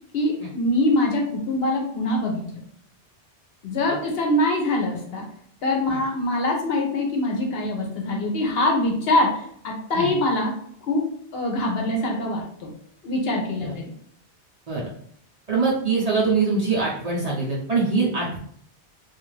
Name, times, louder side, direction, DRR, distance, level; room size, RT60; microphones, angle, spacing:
voice 1, 0.1-2.6 3.6-5.2 5.6-10.5 10.8-11.0 11.3-12.7 13.0-13.9, left 1 dB, 65° left, 1 dB, 0.8 m, -24 dB
voice 2, 15.5-18.4, right 4 dB, 45° right, -5 dB, 0.5 m, -23 dB
2.4 x 2.3 x 3.1 m, 0.63 s
omnidirectional pair, 1.1 m